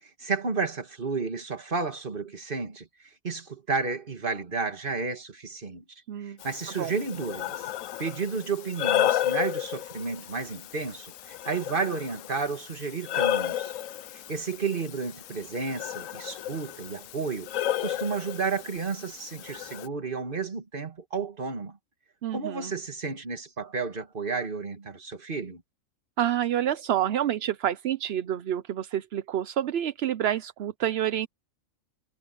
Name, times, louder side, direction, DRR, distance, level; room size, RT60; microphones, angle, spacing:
voice 1, 0.0-2.9 3.2-7.7 8.0-13.7 14.1-17.5 17.8-21.8 22.3-25.6, right 4 dB, 40° right, 2.0 m, -32 dB
Breathing, 6.4-19.9, left 12 dB, 75° left, 1.0 m, -32 dB
voice 2, 22.2-22.7 26.2-31.3, right 11 dB, 60° right, 0.8 m, -28 dB
omnidirectional pair, 1.4 m